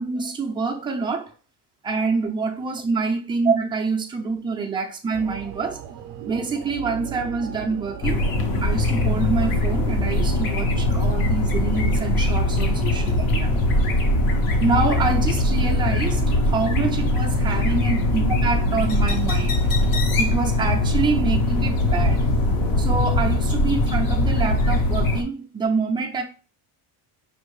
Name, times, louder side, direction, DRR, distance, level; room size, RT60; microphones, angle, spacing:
voice 1, 0.0-1.3 1.8-5.8 6.3-8.2 8.6-13.5 14.6-19.7 20.2-22.3 22.8-26.2, right 4 dB, 10° right, 0.3 m, -26 dB
sound 1, 5.1-23.1, right 10 dB, 65° right, 0.6 m, -36 dB
sound 2, 8.0-25.2, left 1 dB, 45° left, 0.7 m, -21 dB
5.4 x 2.5 x 3.1 m
cardioid pair, 160°, 46 cm